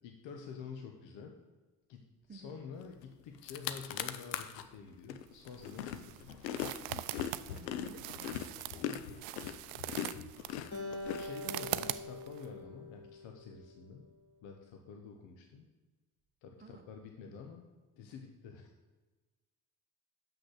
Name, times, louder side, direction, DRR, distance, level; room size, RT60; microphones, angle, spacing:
voice 1, 0.0-1.3 1.9-6.6 8.8-9.2 11.2-14.1 14.4-15.7 16.4-17.7 18.0-18.7, left 5 dB, 65° left, 3 dB, 1.1 m, -49 dB
sound 1, 3.0-3.1 3.3-4.6 5.1-11.8, left 10 dB, 85° left, 0.6 m, -40 dB
sound 2, 5.3-12.5, right 16 dB, 60° right, 0.5 m, -42 dB
voice 2, 7.5-8.4 16.6-16.9, right 4 dB, 20° right, 7 dB, 1.0 m, -53 dB
Acoustic guitar, 10.7-14.1, left 2 dB, 40° left, 2.2 m, -45 dB
6.8 x 6.2 x 6.4 m, 1.3 s
hypercardioid pair, 60°, 48 cm